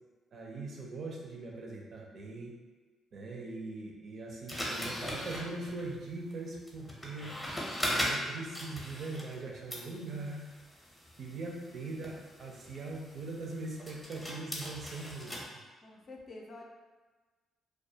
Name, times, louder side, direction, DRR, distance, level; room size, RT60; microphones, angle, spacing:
voice 1, 0.3-2.5 3.1-7.3 7.8-10.4 11.2-15.6, right 3 dB, 55° right, -1 dB, 0.5 m, -41 dB
sound 1, 4.5-9.4 9.7-15.4, equal, 10° left, 0.7 m, -39 dB
voice 2, 15.8-16.6, left 2 dB, 45° left, -1 dB, 0.4 m, -48 dB
2.3 x 2.2 x 2.7 m, 1.3 s
cardioid pair, 90°, 0 cm